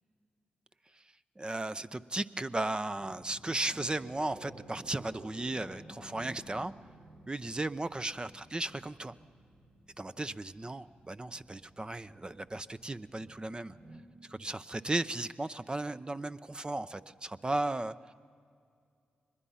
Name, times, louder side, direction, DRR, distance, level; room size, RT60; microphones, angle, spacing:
voice 1, 1.4-6.7 7.3-9.1 10.0-13.7 14.3-17.9, right 2 dB, 25° right, 13 dB, 0.6 m, -35 dB
sound 1, 3.0-14.0, right 1 dB, 60° right, 4.2 m, -54 dB
23.5 x 21.0 x 5.7 m, 2.3 s
supercardioid pair, 50°, 4 cm